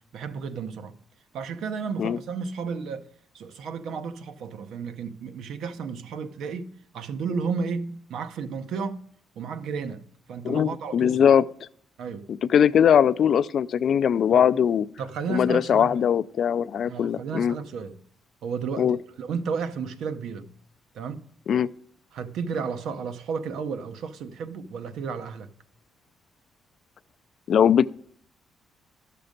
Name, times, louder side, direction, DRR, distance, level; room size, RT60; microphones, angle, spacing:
voice 1, 0.1-0.9 1.3-3.1 3.3-9.0 9.4-10.0 10.3-11.4 12.0-12.2 14.3-14.5 15.0-16.0 16.9-18.0 18.4-20.5 20.9-21.2 22.1-25.5, right 5 dB, 75° right, 0.7 m, -33 dB
voice 2, 10.4-11.4 12.3-14.9 15.3-17.5 18.8-19.0 21.5-21.7 27.5-27.9, left 8 dB, 60° left, 0.4 m, -21 dB
12.0 x 6.8 x 5.1 m
cardioid pair, 90°, 0 cm